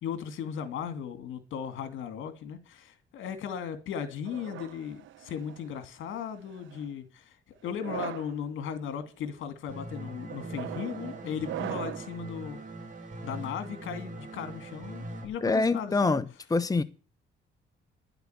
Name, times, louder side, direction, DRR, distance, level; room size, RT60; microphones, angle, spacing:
voice 1, 0.0-12.6 13.2-16.2, left 8 dB, 80° left, 2.6 m, -37 dB
sound 1, 4.3-5.7 6.5-6.8 7.7-8.3 9.0-9.3 10.3-12.2, right 13 dB, 75° right, 1.0 m, -40 dB
sound 2, 9.7-15.2, right 1 dB, 40° right, 6.3 m, -41 dB
voice 2, 15.4-16.2 16.5-16.8, left 3 dB, 20° left, 1.0 m, -25 dB
11.0 x 8.0 x 9.5 m
cardioid pair, 90°, 20 cm